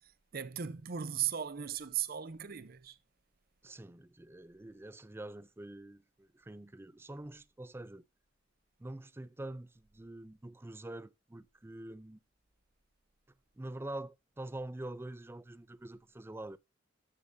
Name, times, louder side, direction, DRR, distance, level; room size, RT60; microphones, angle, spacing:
voice 1, 0.3-3.0, right 9 dB, 55° right, 0.6 m, -37 dB
voice 2, 3.6-8.0 8.8-12.2 13.6-16.6, right 1 dB, 10° right, 0.4 m, -45 dB
13.5 x 7.0 x 2.6 m
head